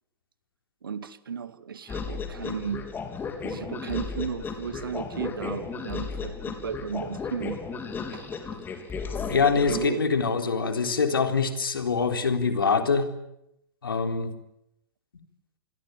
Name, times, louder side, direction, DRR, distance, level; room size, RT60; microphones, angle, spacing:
voice 1, 0.8-2.9 3.4-7.6 8.1-8.4 9.7-10.0, right 7 dB, 65° right, 12 dB, 2.2 m, -34 dB
sound 1, 1.9-9.9, left 5 dB, 15° left, 3.9 m, -34 dB
voice 2, 9.3-13.1 13.8-14.3, left 5 dB, 70° left, 6 dB, 3.7 m, -24 dB
27.5 x 21.5 x 9.5 m, 0.83 s
figure-of-eight pair, 105°, 12 cm